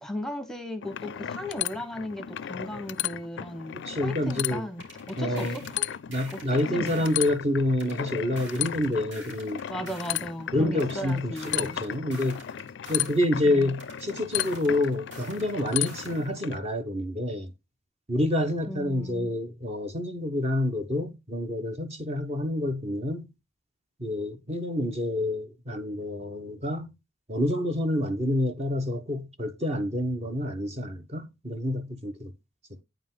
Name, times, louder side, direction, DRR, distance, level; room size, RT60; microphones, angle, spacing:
voice 1, 0.0-3.7 4.0-5.9 6.3-7.0 9.7-11.8 13.4-13.7 18.7-19.3, left 1 dB, ahead, 1.1 m, -36 dB
sound 1, 0.8-16.6, left 11 dB, 65° left, 0.4 m, -35 dB
voice 2, 3.7-4.7 5.2-5.6 6.1-9.6 10.5-12.4 12.9-17.5 18.1-23.3 24.0-26.9 27.3-32.3, left 1 dB, 35° right, 1.0 m, -28 dB
sound 2, 4.8-7.3 7.8-10.2 10.8-13.2 13.8-16.2, right 1 dB, 65° right, 4.2 m, -47 dB
9.1 x 5.1 x 3.7 m
head